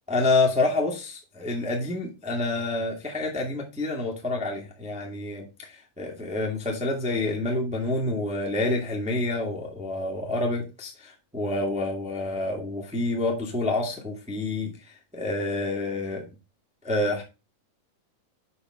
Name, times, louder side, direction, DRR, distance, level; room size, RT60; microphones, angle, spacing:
voice 1, 0.1-16.3 16.8-17.2, left 2 dB, 5° right, 1.2 m, -28 dB
7.0 x 5.8 x 5.0 m
omnidirectional pair, 4.0 m